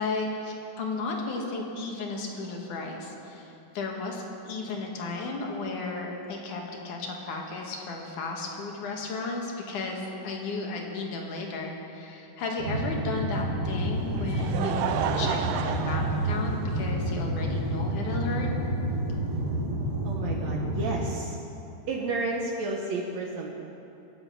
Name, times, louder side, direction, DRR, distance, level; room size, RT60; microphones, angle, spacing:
voice 1, 0.0-18.5, left 3 dB, 75° left, 0 dB, 3.1 m, -34 dB
sound 1, 12.6-21.0, right 1 dB, 45° right, 2.9 m, -29 dB
Laughter, 13.9-17.1 17.9-18.0 19.5-19.6, right 8 dB, 85° right, 2.2 m, -32 dB
voice 2, 20.0-21.4 21.9-23.5, right 3 dB, 65° right, 0 dB, 2.2 m, -31 dB
24.0 x 8.3 x 5.7 m, 2.8 s
omnidirectional pair, 3.6 m